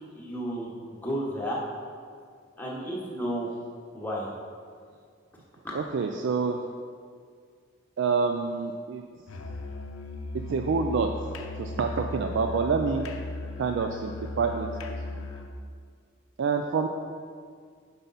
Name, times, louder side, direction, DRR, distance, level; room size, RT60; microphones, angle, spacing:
voice 1, 0.1-1.6 2.6-3.5 3.9-4.4, equal, 10° left, -5 dB, 1.1 m, -32 dB
voice 2, 5.7-6.6 8.0-9.0 10.5-11.1 11.6-13.1 13.6-14.7 15.1-15.2 16.4-16.9, right 5 dB, 60° right, 5 dB, 0.3 m, -27 dB
Musical instrument, 9.3-15.6, left 2 dB, 85° left, 0.6 m, -37 dB
7.9 x 5.5 x 4.0 m, 2.1 s
head